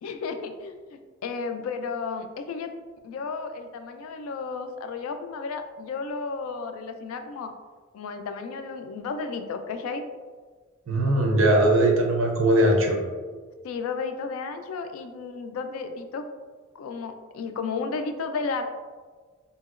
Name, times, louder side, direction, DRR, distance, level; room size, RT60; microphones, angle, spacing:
voice 1, 0.0-2.7 3.0-7.5 7.9-10.1 13.6-16.2 16.7-18.6, left 4 dB, 85° left, 7 dB, 0.3 m, -33 dB
voice 2, 10.9-13.0, right 1 dB, 70° right, 0 dB, 0.6 m, -20 dB
2.8 x 2.7 x 2.4 m, 1.5 s
head